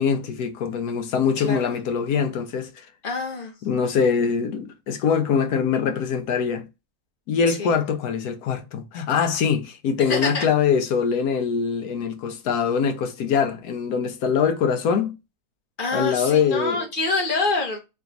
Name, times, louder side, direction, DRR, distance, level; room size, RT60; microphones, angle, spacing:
voice 1, 0.0-2.7 3.6-6.7 7.3-15.1 15.9-16.8, left 6 dB, 70° left, 1.1 m, -23 dB
voice 2, 1.4-1.7 3.0-3.5 7.5-7.7 10.0-10.5 15.8-17.8, left 3 dB, 35° left, 1.0 m, -26 dB
3.4 x 2.9 x 3.8 m
omnidirectional pair, 1.8 m